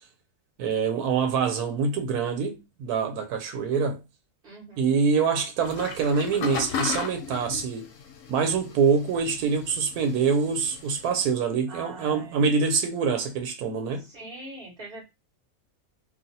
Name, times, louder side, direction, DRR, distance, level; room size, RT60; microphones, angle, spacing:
voice 1, 0.6-4.0 4.8-7.9 8.3-14.1, right 5 dB, 90° right, 1.1 m, -25 dB
voice 2, 4.4-4.9 11.7-12.5 14.0-15.1, right 2 dB, 40° right, 1.6 m, -42 dB
sound 1, 5.6-11.2, left 6 dB, 65° left, 0.9 m, -36 dB
3.2 x 2.4 x 2.7 m
omnidirectional pair, 1.6 m